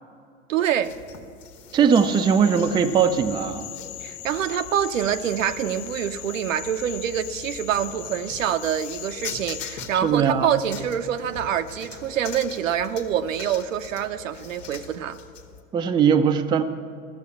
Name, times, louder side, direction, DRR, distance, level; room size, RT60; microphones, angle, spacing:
voice 1, 0.5-1.0 4.0-15.2, right 9 dB, 75° right, 9 dB, 0.8 m, -26 dB
sound 1, 0.8-15.6, left 6 dB, 70° left, 1.5 m, -43 dB
voice 2, 1.7-3.7 9.9-10.6 15.7-16.6, right 7 dB, 10° right, 7 dB, 0.5 m, -20 dB
sound 2, 1.9-9.8, left 13 dB, 45° left, 0.7 m, -39 dB
14.0 x 7.4 x 8.3 m, 2.4 s
hypercardioid pair, 105°, 39 cm